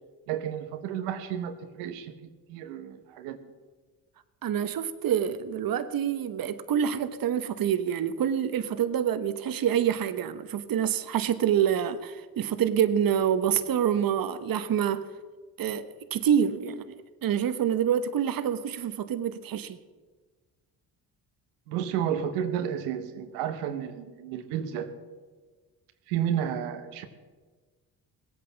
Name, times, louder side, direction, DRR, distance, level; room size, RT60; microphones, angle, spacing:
voice 1, 0.3-3.4 21.7-24.9 26.1-27.0, right 9 dB, 90° right, 1.1 m, -32 dB
voice 2, 4.4-15.0 15.6-17.0 17.2-19.8, right 9 dB, 55° right, 1.1 m, -27 dB
18.5 x 8.7 x 7.1 m
supercardioid pair, 65°, 43 cm